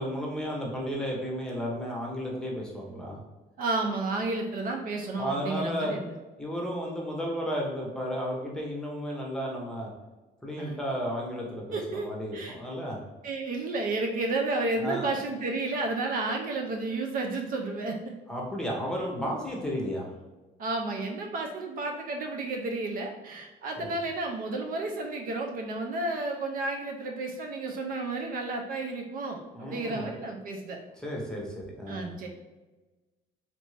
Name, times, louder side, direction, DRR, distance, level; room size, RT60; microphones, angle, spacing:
voice 1, 0.0-3.2 5.2-5.9 6.4-9.9 10.4-13.0 14.8-15.1 18.3-20.1 23.8-23.9 29.5-30.1 31.0-32.1, equal, 5° left, -2 dB, 0.9 m, -33 dB
voice 2, 3.6-6.1 10.6-10.8 11.7-12.6 13.2-18.0 20.6-30.8 31.9-32.3, right 2 dB, 55° right, 2 dB, 0.5 m, -32 dB
3.2 x 2.5 x 3.2 m, 1.2 s
cardioid pair, 110°, 17 cm